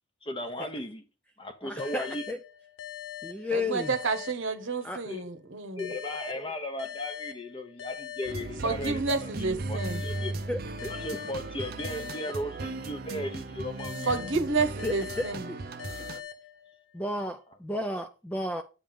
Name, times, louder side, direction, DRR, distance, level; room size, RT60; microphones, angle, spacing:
voice 1, 0.2-1.0 1.4-2.3 5.0-5.3 5.7-10.3 10.9-14.1, left 1 dB, 25° left, 0.8 m, -36 dB
voice 2, 1.6-2.4 3.2-3.9 4.8-5.0 10.5-10.9 14.8-15.6 15.9-16.0 16.9-18.6, left 2 dB, 5° left, 0.3 m, -33 dB
sound 1, 1.8-5.1 5.8-9.1 9.8-13.1 13.8-17.1, left 9 dB, 70° left, 0.8 m, -43 dB
voice 3, 3.5-5.9 8.6-10.0 14.1-15.5, right 3 dB, 65° right, 1.0 m, -30 dB
sound 2, 8.2-16.2, right 3 dB, 45° right, 0.5 m, -37 dB
8.7 x 3.5 x 5.1 m
head